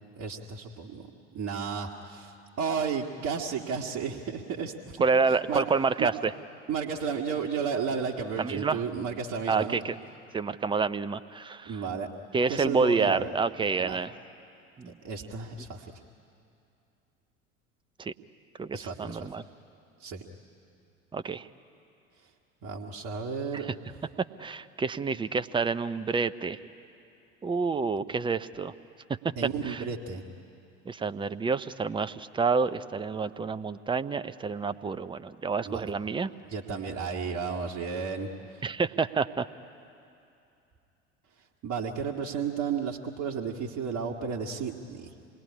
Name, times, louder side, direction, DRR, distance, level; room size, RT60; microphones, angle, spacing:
voice 1, 0.2-1.1 1.3-5.6 6.0-6.1 6.7-9.8 11.7-12.1 12.5-13.3 13.8-14.0 14.9-16.0 18.7-19.2 20.0-20.3 22.6-23.7 29.4-30.2 35.6-35.9 36.5-38.6 41.6-45.1, right 6 dB, 40° right, -2 dB, 1.8 m, -33 dB
voice 2, 5.0-6.3 8.4-8.8 9.5-10.0 10.3-11.7 12.3-14.1 14.8-14.9 18.0-18.1 18.6-19.4 21.1-21.5 23.5-23.7 24.2-26.6 27.4-28.7 29.6-29.8 30.9-36.3 38.6-39.5, right 4 dB, 15° right, 13 dB, 0.7 m, -28 dB
27.5 x 20.5 x 10.0 m, 2.6 s
figure-of-eight pair, 70°, 39 cm